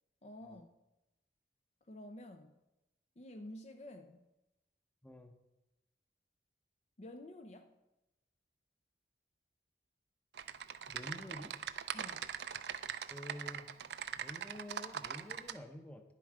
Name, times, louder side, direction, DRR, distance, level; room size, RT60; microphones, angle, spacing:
voice 1, 0.2-0.7 1.9-2.6 3.2-4.3 7.0-7.7 11.9-12.3, left 1 dB, 35° left, 7 dB, 0.5 m, -50 dB
voice 2, 5.0-5.3 10.9-11.5 13.1-13.7 14.1-16.0, left 1 dB, 10° left, 6 dB, 0.7 m, -48 dB
Typing, 10.3-15.6, right 8 dB, 70° right, 0.5 m, -42 dB
10.5 x 7.6 x 4.9 m, 0.98 s
head